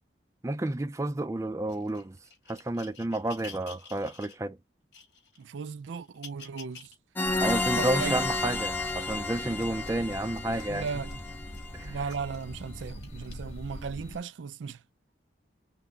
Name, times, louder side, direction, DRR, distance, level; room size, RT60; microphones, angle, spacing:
voice 1, 0.4-2.2 2.5-4.6 7.4-10.9 11.7-12.0, right 1 dB, 15° right, 0.4 m, -31 dB
sound 1, 1.7-4.4 4.9-5.4 6.0-7.0 7.4-12.5 13.0-13.3 14.1-14.2, left 5 dB, 70° left, 2.9 m, -51 dB
voice 2, 5.4-6.9 7.7-8.3 10.5-11.2 11.8-14.8, right 5 dB, 90° right, 0.4 m, -36 dB
sound 2, 7.2-11.8, left 3 dB, 10° left, 0.7 m, -31 dB
sound 3, 7.3-14.2, left 1 dB, 35° left, 1.5 m, -43 dB
5.7 x 2.2 x 3.9 m
head